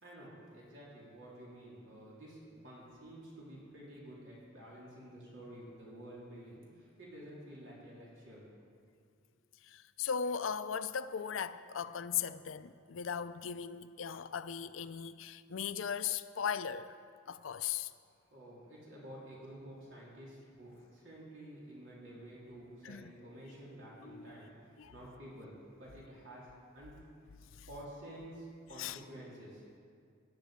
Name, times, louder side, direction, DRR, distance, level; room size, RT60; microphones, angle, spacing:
voice 1, 0.0-8.5 18.3-26.5 26.7-27.0 27.7-29.6, right 1 dB, 70° right, 3.7 m, -51 dB
voice 2, 9.6-17.0 17.3-17.9 22.8-23.1 24.0-24.4 24.8-24.9 27.5-27.7 28.8-29.0, left 7 dB, 80° left, 0.5 m, -38 dB
15.5 x 10.5 x 5.2 m
head